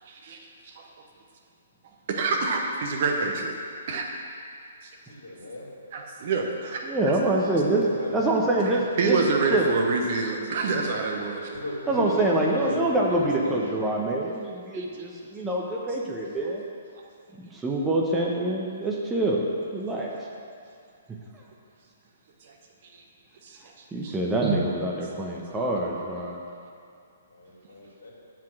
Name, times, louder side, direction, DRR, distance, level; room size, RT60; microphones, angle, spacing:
voice 1, 0.1-0.4 0.8-0.9 2.1-3.5 3.9-4.1 5.9-6.9 9.0-11.5 14.7-14.8 23.4-23.6 24.0-24.1, right 4 dB, 45° right, 1 dB, 1.1 m, -26 dB
voice 2, 5.1-5.7 7.4-8.8 11.5-13.6 27.3-28.1, left 1 dB, 65° left, -4 dB, 2.5 m, -35 dB
voice 3, 6.8-7.9 8.1-9.7 11.9-16.6 17.4-19.4 19.7-20.1 23.9-26.4, right 2 dB, 10° right, -3 dB, 0.9 m, -25 dB
7.5 x 5.7 x 7.4 m, 2.4 s
figure-of-eight pair, 120°, 0 cm